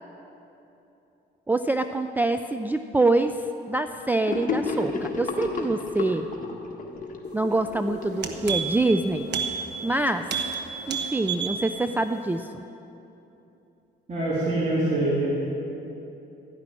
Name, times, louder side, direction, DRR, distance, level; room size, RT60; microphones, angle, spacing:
voice 1, 1.5-6.3 7.3-9.3 9.8-10.3 10.9-12.6, right 2 dB, 10° right, 8 dB, 0.4 m, -25 dB
Gurgling / Sink (filling or washing), 4.3-8.7, left 3 dB, 40° left, 1.6 m, -31 dB
sound 1, 7.6-7.7 8.0-8.9 9.3-9.5 9.8-10.0 10.3-10.5 10.8-11.6 11.9-12.0, right 7 dB, 60° right, 1.2 m, -29 dB
voice 2, 14.1-15.3, right 2 dB, 35° right, -8 dB, 3.5 m, -24 dB
14.0 x 6.0 x 9.9 m, 3.0 s
cardioid pair, 90°, 20 cm